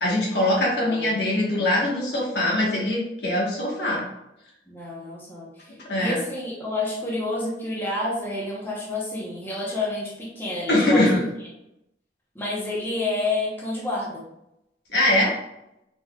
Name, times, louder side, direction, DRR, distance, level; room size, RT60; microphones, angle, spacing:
voice 1, 0.0-4.0 5.9-6.2 10.7-11.2 14.9-15.3, left 1 dB, 65° left, -3 dB, 1.3 m, -22 dB
voice 2, 4.7-11.0 12.3-14.2, left 2 dB, 10° left, -5 dB, 0.9 m, -29 dB
4.3 x 3.9 x 2.3 m, 0.86 s
head